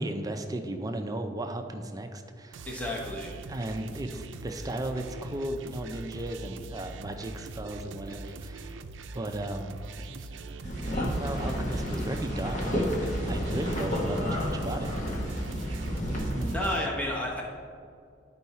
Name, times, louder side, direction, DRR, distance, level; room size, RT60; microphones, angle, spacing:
voice 1, 0.0-2.7 3.5-8.8 9.1-10.3 10.9-12.9 13.3-14.9 16.3-16.6, right 1 dB, 20° right, 5 dB, 0.5 m, -35 dB
sound 1, 2.5-16.9, right 3 dB, 85° right, 0.4 m, -42 dB
voice 2, 2.7-3.3 16.5-17.4, left 1 dB, 10° left, -2 dB, 1.0 m, -31 dB
sound 2, 10.6-16.6, equal, 40° left, 1.1 m, -30 dB
11.5 x 4.6 x 4.2 m, 2.3 s
head